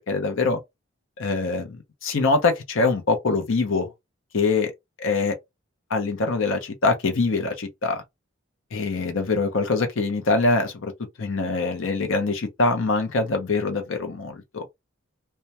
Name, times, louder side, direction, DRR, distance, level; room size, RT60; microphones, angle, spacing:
voice 1, 0.1-0.6 1.2-3.9 4.3-4.7 5.0-5.4 5.9-8.0 8.7-10.9 11.2-14.7, left 3 dB, 70° left, 0.6 m, -24 dB
2.2 x 2.1 x 2.7 m
head